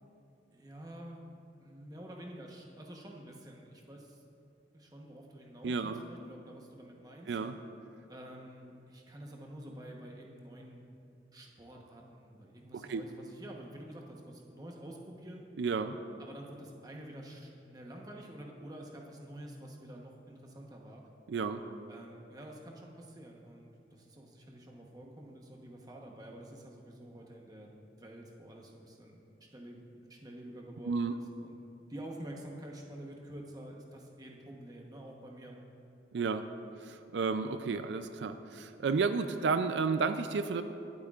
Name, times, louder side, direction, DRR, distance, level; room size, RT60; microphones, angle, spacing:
voice 1, 0.5-4.2 4.7-7.4 8.1-10.8 11.3-15.5 16.2-21.1 21.9-27.7 28.0-29.2 29.5-31.5 31.9-35.6, right 1 dB, 20° right, 0 dB, 1.0 m, -48 dB
voice 2, 5.6-6.0 7.3-7.6 12.7-13.0 15.6-16.0 21.3-21.6 30.8-31.1 36.1-36.4 36.8-40.6, right 4 dB, 80° right, 9 dB, 0.4 m, -32 dB
23.0 x 8.1 x 2.4 m, 2.7 s
head